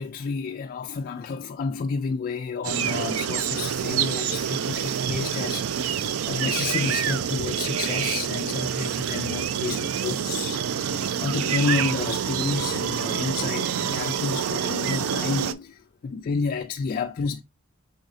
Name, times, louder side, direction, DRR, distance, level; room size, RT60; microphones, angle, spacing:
voice 1, 0.0-10.6 11.2-17.4, left 4 dB, 45° left, 0.3 m, -30 dB
sound 1, 2.6-15.5, right 8 dB, 80° right, 0.4 m, -27 dB
4.9 x 3.9 x 2.6 m
head